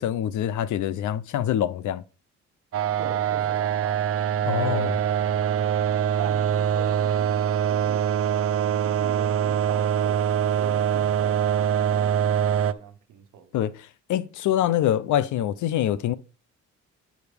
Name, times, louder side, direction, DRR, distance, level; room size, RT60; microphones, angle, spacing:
voice 1, 0.0-2.0 4.5-5.0 13.5-16.1, left 11 dB, 75° left, 0.7 m, -25 dB
sound 1, 2.7-12.7, right 9 dB, 50° right, 0.6 m, -24 dB
voice 2, 3.0-4.2 4.6-5.1 5.4-8.1 8.6-13.7, right 8 dB, 80° right, 1.4 m, -42 dB
9.1 x 5.1 x 5.2 m
cardioid pair, 90°, 30 cm